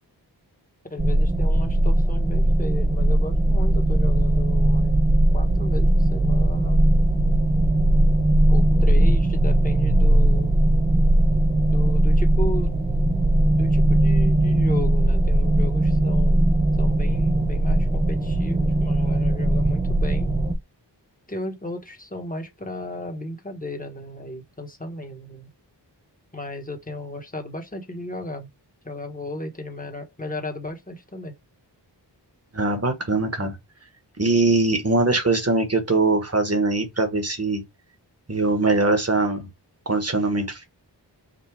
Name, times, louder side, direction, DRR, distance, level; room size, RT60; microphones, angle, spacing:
voice 1, 0.9-4.9 5.3-6.8 8.5-10.5 11.7-13.2 13.5-16.5 16.8-20.3 21.3-25.5 26.3-28.5 28.8-31.3, left 1 dB, 20° left, 1.4 m, -35 dB
sound 1, 1.0-20.5, right 1 dB, 15° right, 0.7 m, -19 dB
voice 2, 32.5-33.6 34.2-37.6 38.3-39.5 39.8-40.6, right 3 dB, 35° right, 1.5 m, -22 dB
5.2 x 2.7 x 3.4 m
wide cardioid pair, 65°, 43 cm